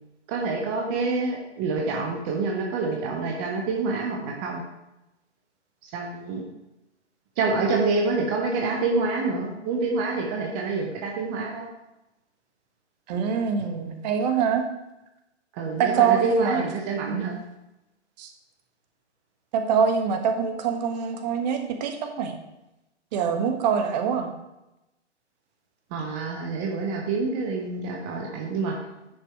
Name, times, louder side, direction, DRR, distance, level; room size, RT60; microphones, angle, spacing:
voice 1, 0.3-4.6 5.9-6.4 7.4-11.7 15.6-17.4 25.9-28.7, right 3 dB, 10° right, 0 dB, 0.4 m, -27 dB
voice 2, 13.1-14.6 15.8-16.7 17.1-17.4 18.2-18.3 19.5-22.3 23.1-24.3, right 7 dB, 35° right, 5 dB, 1.3 m, -24 dB
10.0 x 5.3 x 4.6 m, 0.94 s
figure-of-eight pair, 120°, 35 cm